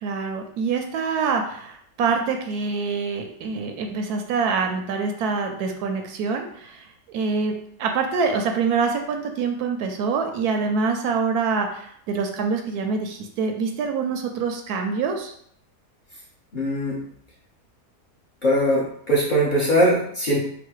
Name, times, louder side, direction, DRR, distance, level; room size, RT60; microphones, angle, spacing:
voice 1, 0.0-6.9 7.1-7.5 7.8-15.3, right 5 dB, 75° right, 4 dB, 1.0 m, -25 dB
voice 2, 16.5-17.0 18.4-20.4, equal, 35° left, -6 dB, 1.0 m, -21 dB
4.0 x 2.2 x 4.6 m, 0.65 s
omnidirectional pair, 1.7 m